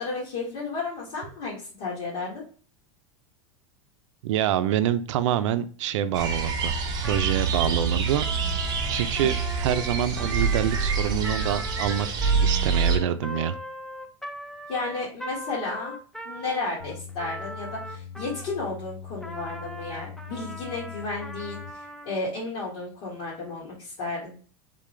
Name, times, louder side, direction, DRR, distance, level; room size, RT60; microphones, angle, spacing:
voice 1, 0.0-2.4 14.7-15.9 16.2-24.3, left 3 dB, 55° left, -6 dB, 1.8 m, -33 dB
voice 2, 4.2-6.7 7.0-8.3 8.9-13.6, right 10 dB, 80° right, 11 dB, 0.5 m, -26 dB
sound 1, 6.1-13.0, right 5 dB, 25° right, 0.8 m, -26 dB
Trumpet, 7.0-18.7 19.2-22.2, equal, 5° left, 0.3 m, -40 dB
sound 2, 16.8-21.7, left 7 dB, 75° left, 0.6 m, -42 dB
3.7 x 3.7 x 3.1 m, 0.41 s
supercardioid pair, 140°, 16 cm